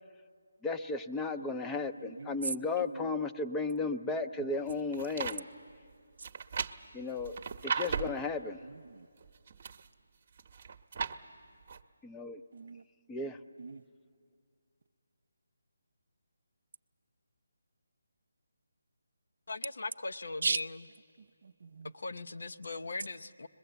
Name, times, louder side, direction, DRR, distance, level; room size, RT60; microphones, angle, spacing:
voice 1, 0.6-5.5 6.9-7.4 7.6-8.6 12.0-12.4 13.1-13.4, left 3 dB, 10° left, 0.5 m, -34 dB
voice 2, 1.4-1.7 2.0-2.5 2.8-3.1 4.4-4.5 8.6-9.1 12.5-12.8 13.6-13.8 20.4-20.6 21.2-21.9, right 4 dB, 60° right, 0.6 m, -38 dB
sound 1, 4.7-5.4 6.2-8.2 9.2-9.9 10.4-11.2 11.7-11.8, right 6 dB, 40° right, 0.9 m, -36 dB
voice 3, 19.5-20.8 21.9-23.5, left 3 dB, 70° left, 0.8 m, -39 dB
28.5 x 21.5 x 8.0 m
hypercardioid pair, 165°, 0 cm